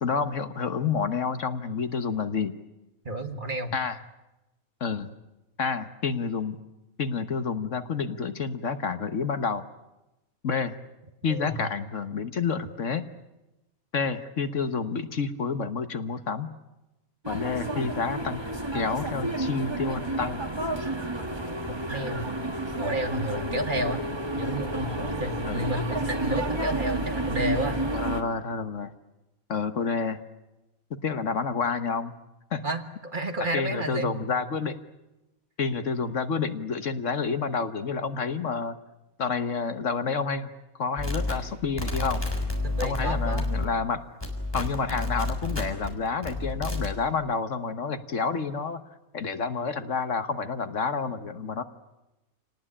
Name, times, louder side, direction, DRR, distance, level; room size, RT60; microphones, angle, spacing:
voice 1, 0.0-2.5 3.7-4.0 4.8-5.1 5.6-6.6 7.0-9.6 10.4-10.8 11.2-13.1 13.9-16.5 17.3-18.4 18.7-20.4 25.4-25.7 27.9-28.9 29.5-30.2 30.9-32.1 32.5-32.6 33.5-34.8 35.6-38.8 39.2-42.2 42.8-44.0 44.5-48.8 49.1-51.6, left 5 dB, 60° left, 10 dB, 1.5 m, -29 dB
voice 2, 3.1-3.7 11.3-11.7 21.9-22.3 22.8-24.0 24.4-27.8 32.6-34.1 42.6-43.5, right 1 dB, 35° right, 7 dB, 1.6 m, -31 dB
sound 1, 17.2-28.2, right 1 dB, 20° right, 1.7 m, -30 dB
sound 2, 41.0-43.9 44.2-45.9 46.2-46.9, left 2 dB, 15° left, 3.9 m, -30 dB
27.5 x 19.0 x 9.9 m, 0.99 s
omnidirectional pair, 1.5 m